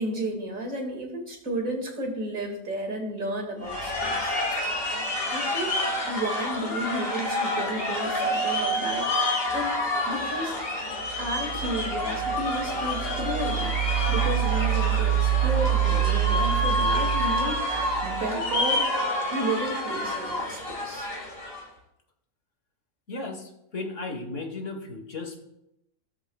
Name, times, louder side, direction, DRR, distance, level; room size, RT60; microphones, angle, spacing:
voice 1, 0.0-4.3 5.3-5.8 6.1-9.7 10.1-10.6 11.2-18.9 19.3-21.1, right 1 dB, 70° right, 1 dB, 2.7 m, -33 dB
sound 1, 3.6-21.6, left 1 dB, 45° left, 2.5 m, -28 dB
sound 2, 11.0-18.5, right 13 dB, 55° right, 2.1 m, -27 dB
voice 2, 23.1-25.4, left 3 dB, 60° left, 4 dB, 1.9 m, -35 dB
16.5 x 13.0 x 2.4 m, 0.84 s
omnidirectional pair, 1.4 m